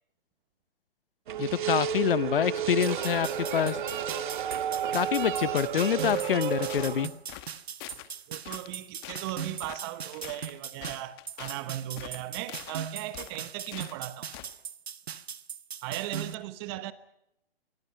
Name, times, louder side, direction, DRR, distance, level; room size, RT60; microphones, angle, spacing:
sound 1, 1.3-7.1, right 9 dB, 50° right, 1.9 m, -31 dB
voice 1, 1.4-3.8 4.9-7.1, left 9 dB, 60° left, 0.8 m, -26 dB
sound 2, 2.8-16.3, right 7 dB, 75° right, 1.3 m, -40 dB
sound 3, 6.1-6.9 7.3-7.5 7.8-8.1 8.4-8.8 9.0-9.3 9.6-9.8 10.1-11.6 12.0-12.8 13.1-14.0 14.3-14.5, left 16 dB, 25° left, 1.2 m, -44 dB
voice 2, 8.3-14.3 15.8-16.9, right 15 dB, 25° right, 1.1 m, -37 dB
26.5 x 23.0 x 5.7 m
hypercardioid pair, 150°, 31 cm